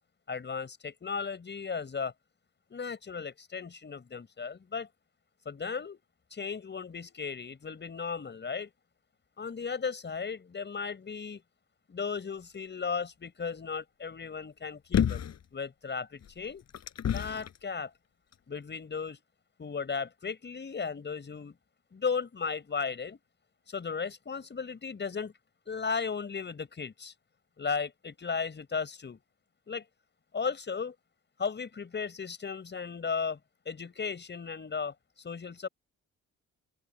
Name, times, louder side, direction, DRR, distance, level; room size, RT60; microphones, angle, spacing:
voice 1, 0.3-2.1 2.7-4.9 5.4-6.0 6.3-8.7 9.4-11.4 11.9-15.2 15.5-16.6 17.0-17.9 18.5-19.2 19.6-21.5 21.9-23.2 23.7-25.3 25.7-27.1 27.6-29.2 29.7-29.8 30.3-30.9 31.4-33.4 33.7-34.9 35.2-35.7, left 5 dB, 35° left, 6.1 m, -35 dB
sound 1, 14.9-15.4 16.2-17.6 18.3-18.4, left 9 dB, 60° left, 5.9 m, -29 dB
cardioid pair, 90°, 30 cm